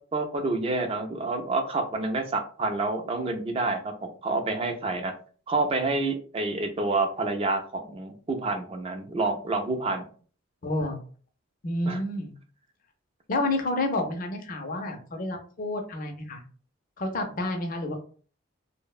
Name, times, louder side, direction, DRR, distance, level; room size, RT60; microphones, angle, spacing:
voice 1, 0.1-3.9 4.2-5.1 5.5-10.1 11.9-12.0, right 3 dB, 30° right, 5 dB, 0.3 m, -28 dB
voice 2, 10.6-11.0 11.6-12.3 13.3-16.4 17.0-18.0, left 2 dB, 40° left, 4 dB, 0.5 m, -29 dB
2.6 x 2.0 x 2.3 m, 0.43 s
head